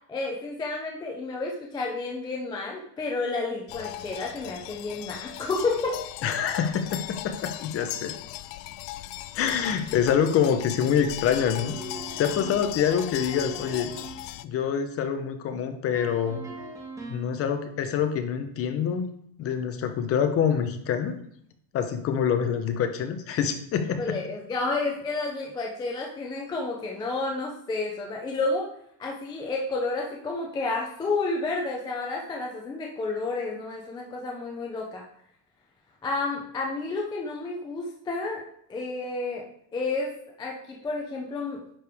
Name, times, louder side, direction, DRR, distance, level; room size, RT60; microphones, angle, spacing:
voice 1, 0.1-6.0 12.1-12.2 24.0-28.7 29.0-35.0 36.0-38.4 38.7-39.4 39.7-40.1 40.4-41.6, left 3 dB, 10° left, -1 dB, 0.3 m, -30 dB
sound 1, 3.7-14.5, left 15 dB, 75° left, 0.6 m, -38 dB
voice 2, 6.2-8.1 9.3-11.8 12.2-13.9 14.4-16.4 17.1-19.1 19.4-21.1 21.7-24.2, left 8 dB, 30° left, 7 dB, 0.7 m, -26 dB
sound 2, 11.3-14.3 15.9-17.4, right 2 dB, 5° right, 1.2 m, -41 dB
9.9 x 4.7 x 3.4 m, 0.70 s
cardioid pair, 160°, 49 cm